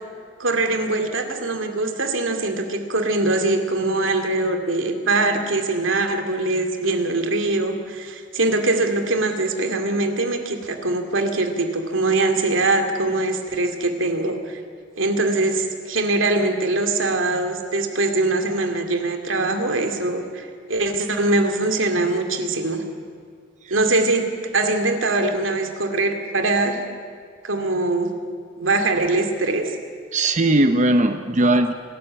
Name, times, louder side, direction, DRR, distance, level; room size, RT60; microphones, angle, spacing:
voice 1, 0.4-14.6 15.0-22.8 23.7-24.3 24.5-26.8 27.4-28.1 28.6-29.8, right 2 dB, 90° right, 5 dB, 2.4 m, -22 dB
voice 2, 30.1-31.7, right 1 dB, 40° right, 7 dB, 0.8 m, -18 dB
28.0 x 13.5 x 8.8 m, 2.1 s
head